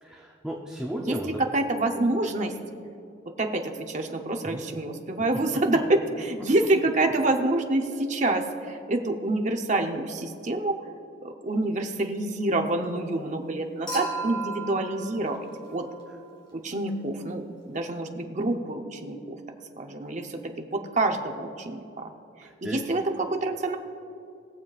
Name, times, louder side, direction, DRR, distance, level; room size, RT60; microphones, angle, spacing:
voice 1, 0.0-1.4 4.4-4.7 6.4-6.5 16.1-16.2 22.4-22.8, equal, 5° right, -2 dB, 0.7 m, -35 dB
voice 2, 1.0-2.6 3.3-10.8 11.2-15.9 16.5-22.1 22.4-23.8, right 2 dB, 40° right, 4 dB, 0.8 m, -27 dB
Human group actions / Chink clink / Liquid, 13.9-16.3 17.7-17.8, right 3 dB, 25° left, 2.3 m, -36 dB
21.0 x 7.3 x 2.4 m, 2.7 s
head